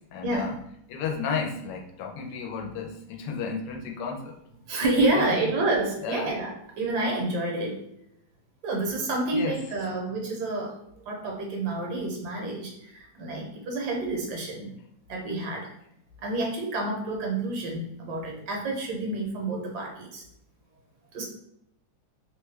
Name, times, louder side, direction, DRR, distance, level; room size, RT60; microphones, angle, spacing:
voice 1, 0.1-0.6 0.9-4.3 5.0-5.4 6.0-6.3 9.3-9.6, left 6 dB, 90° left, 1 dB, 1.2 m, -33 dB
voice 2, 4.7-7.8 8.6-10.7 11.1-12.7 13.2-14.7 15.1-15.7 16.2-20.2 21.1-21.2, right 2 dB, 75° right, 0 dB, 1.4 m, -28 dB
3.1 x 2.2 x 3.2 m, 0.76 s
omnidirectional pair, 1.8 m